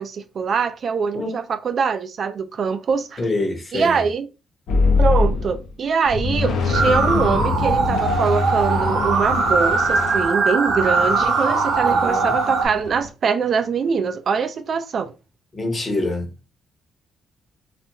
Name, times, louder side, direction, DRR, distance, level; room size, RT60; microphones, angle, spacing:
voice 1, 0.0-3.2 3.7-4.3 5.0-15.1, right 6 dB, 50° right, 0.3 m, -23 dB
voice 2, 3.2-4.0 11.8-12.3 15.5-16.5, left 2 dB, 30° left, 0.8 m, -26 dB
sound 1, 4.7-5.7 6.1-13.1, left 4 dB, 70° left, 0.6 m, -24 dB
sound 2, 6.7-12.7, right 4 dB, 75° right, 0.7 m, -21 dB
2.4 x 2.2 x 2.8 m
cardioid pair, 90°, 0 cm